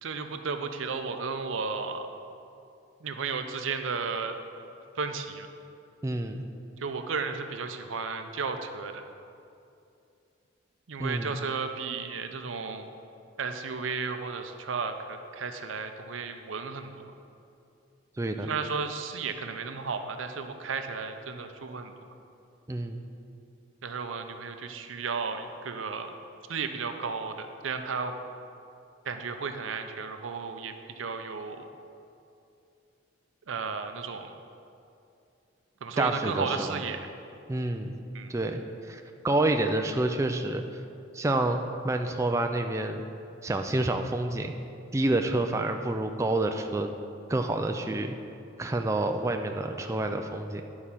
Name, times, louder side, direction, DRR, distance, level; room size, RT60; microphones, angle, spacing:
voice 1, 0.0-2.1 3.0-4.4 4.9-5.5 6.8-9.0 10.9-12.9 13.4-17.2 18.4-21.9 23.8-26.1 26.5-28.2 29.0-31.7 33.5-34.3 35.8-37.1 38.1-38.4, right 5 dB, 85° right, 7 dB, 0.6 m, -34 dB
voice 2, 6.0-6.5 11.0-11.3 18.2-18.5 22.7-23.0 36.0-36.8 37.5-38.0 38.3-40.6 41.1-43.0 43.4-44.5 44.9-46.9 47.3-48.2 48.6-50.6, right 2 dB, 15° right, 5 dB, 0.3 m, -28 dB
10.5 x 4.8 x 5.7 m, 2.6 s
head